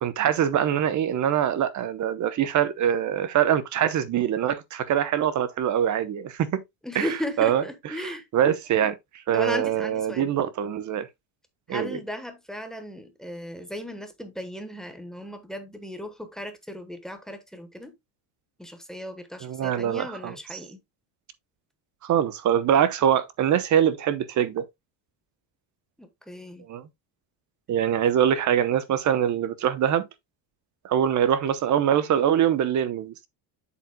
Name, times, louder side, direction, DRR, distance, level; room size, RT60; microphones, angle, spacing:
voice 1, 0.0-6.6 6.9-7.1 7.4-7.6 8.0-9.0 9.3-11.1 11.7-12.0 19.4-20.6 22.0-24.7 26.7-26.9 27.7-30.1 30.8-33.3, right 9 dB, 40° right, 0.9 m, -23 dB
voice 2, 6.8-8.3 9.3-10.3 11.7-17.9 18.6-20.8 26.0-26.6 28.0-28.1, equal, ahead, 1.1 m, -36 dB
8.0 x 7.3 x 2.2 m
cardioid pair, 175°, 47 cm